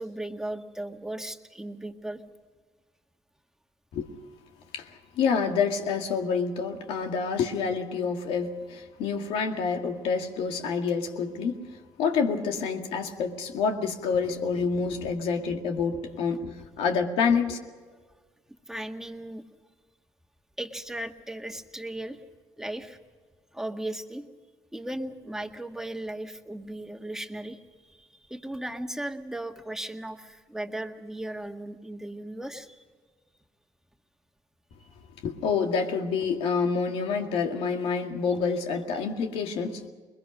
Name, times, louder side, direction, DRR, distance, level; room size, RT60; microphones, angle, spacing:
voice 1, 0.0-2.2 18.7-19.4 20.6-22.2 22.6-23.0 23.5-24.3 24.7-32.8, right 1 dB, 5° right, 5 dB, 1.8 m, -36 dB
voice 2, 4.7-11.6 12.0-17.6 35.2-39.8, left 5 dB, 80° left, 4 dB, 2.1 m, -28 dB
21.5 x 21.5 x 6.4 m, 1.5 s
supercardioid pair, 70°, 9 cm